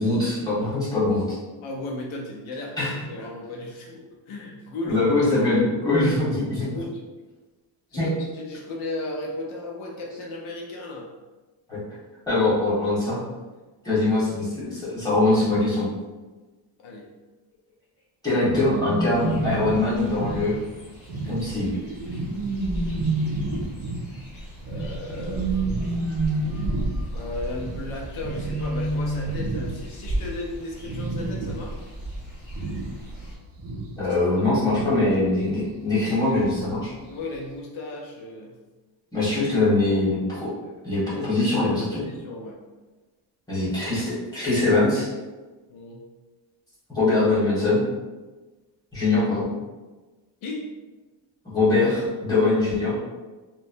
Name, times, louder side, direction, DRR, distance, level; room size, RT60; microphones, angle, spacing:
voice 1, 0.0-1.4 2.8-3.2 4.8-6.7 7.9-8.1 11.7-12.0 12.3-13.2 13.8-15.9 18.2-20.6 21.3-21.8 34.0-36.9 39.1-40.5 40.8-42.0 43.5-45.1 46.9-47.8 48.9-49.4 51.5-52.9, left 2 dB, 10° left, -11 dB, 1.3 m, -22 dB
voice 2, 1.6-2.8 3.0-5.0 6.6-7.0 7.9-11.1 16.8-17.1 24.7-25.5 27.1-31.8 34.0-34.2 34.4-35.2 37.1-38.6 41.1-42.6 45.7-46.0 50.4-50.7, left 2 dB, 75° left, -1 dB, 0.6 m, -35 dB
sound 1, 18.4-30.1 30.4-30.6 30.8-31.8 32.1-33.2 33.5-35.1 36.4-36.8 37.2-37.3, right 2 dB, 45° right, 0.5 m, -29 dB
sound 2, 19.1-33.3, right 1 dB, 40° left, 0.8 m, -36 dB
3.0 x 2.2 x 2.6 m, 1.2 s
cardioid pair, 140°, 48 cm